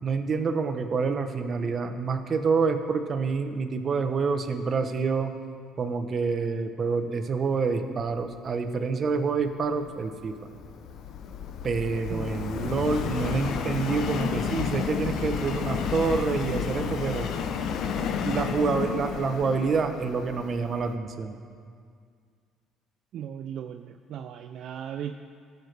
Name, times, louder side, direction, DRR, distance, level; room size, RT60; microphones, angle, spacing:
voice 1, 0.0-5.3 5.8-10.4 11.6-17.3 18.2-21.4, right 4 dB, 40° right, 7 dB, 0.8 m, -27 dB
Subway metro underground, 9.6-20.9, left 7 dB, 65° left, 0.6 m, -31 dB
voice 2, 23.1-25.1, right 9 dB, 60° right, 7 dB, 0.3 m, -37 dB
16.5 x 6.6 x 3.3 m, 2.1 s
cardioid pair, 110°, 0 cm